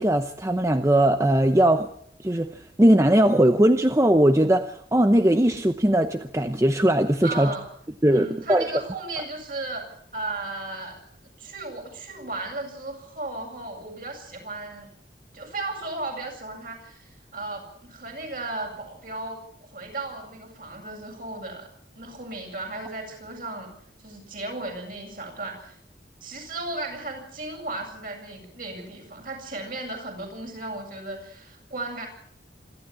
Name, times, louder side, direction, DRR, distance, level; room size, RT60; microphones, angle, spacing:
voice 1, 0.0-1.9 2.2-7.5 8.0-8.7, right 1 dB, 15° right, 8 dB, 0.8 m, -20 dB
voice 2, 7.2-7.6 8.1-11.0 11.4-14.9 15.3-21.7 21.9-23.7 24.0-25.7 26.2-32.1, right 2 dB, 50° right, 2 dB, 7.9 m, -35 dB
26.5 x 12.5 x 8.7 m, 0.65 s
head